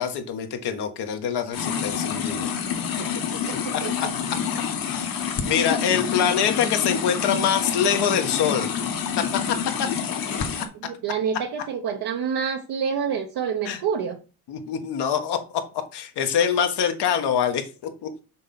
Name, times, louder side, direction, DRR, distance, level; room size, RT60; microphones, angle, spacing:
voice 1, 0.0-2.5 3.5-4.4 4.9-5.1 5.4-8.7 9.8-9.9 10.6-10.7 13.6-13.8 14.5-15.6 15.9-18.2, left 8 dB, 70° left, 1.5 m, -25 dB
sound 1, 1.5-10.7, left 7 dB, 55° left, 1.6 m, -28 dB
voice 2, 3.4-4.1 10.8-14.2, right 7 dB, 60° right, 1.0 m, -28 dB
6.3 x 3.7 x 5.9 m
supercardioid pair, 70°, 41 cm